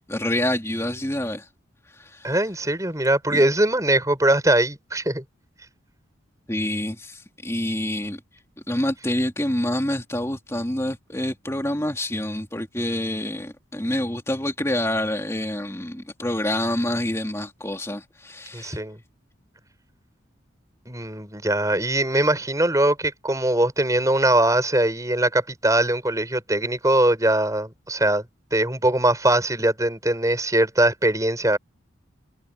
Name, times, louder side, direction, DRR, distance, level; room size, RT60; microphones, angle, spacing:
voice 1, 0.1-1.5 2.0-2.3 3.3-3.4 6.5-8.2 8.7-18.8, left 1 dB, 15° left, 2.9 m, -27 dB
voice 2, 2.2-5.2 18.5-19.0 20.9-28.2 28.5-31.6, right 1 dB, 15° right, 6.0 m, -21 dB
head